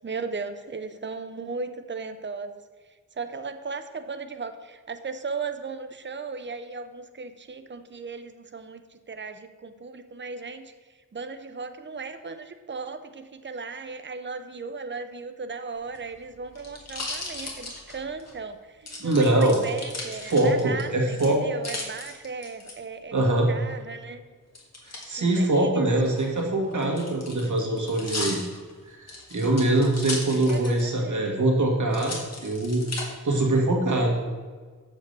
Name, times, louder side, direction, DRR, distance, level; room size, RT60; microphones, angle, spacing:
voice 1, 0.0-2.6 2.9-10.7 11.1-23.2 23.5-24.2 25.2-26.2 30.5-31.3, right 4 dB, 35° right, 9 dB, 0.7 m, -36 dB
sound 1, 15.8-18.3 18.9-20.8 21.2-22.7 24.5-25.1 26.0-30.9 31.2-31.3 31.9-33.0 33.7-34.2, left 2 dB, 50° left, 1.9 m, -36 dB
voice 2, 19.0-19.6 20.3-21.4 23.1-23.5 25.1-28.4 28.9-32.2 32.4-32.8 33.2-34.2, right 1 dB, 65° right, -1 dB, 1.9 m, -23 dB
6.9 x 5.2 x 6.7 m, 1.5 s
wide cardioid pair, 80°, 32 cm